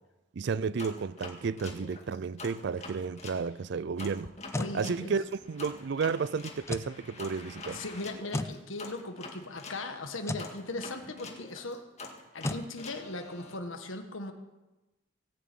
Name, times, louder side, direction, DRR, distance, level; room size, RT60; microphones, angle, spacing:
voice 1, 0.3-4.3 4.7-7.8, right 5 dB, 55° right, 0.4 m, -32 dB
sound 1, 0.8-3.4 4.0-9.8 10.4-13.6, left 3 dB, 35° left, 1.9 m, -46 dB
sound 2, 4.2-4.8 6.6-6.9 8.3-8.6 10.2-10.5 12.4-12.7, left 1 dB, 15° left, 0.5 m, -33 dB
voice 2, 4.6-5.2 7.7-11.8 12.3-14.3, left 2 dB, 75° left, 1.6 m, -38 dB
18.0 x 7.2 x 8.7 m
head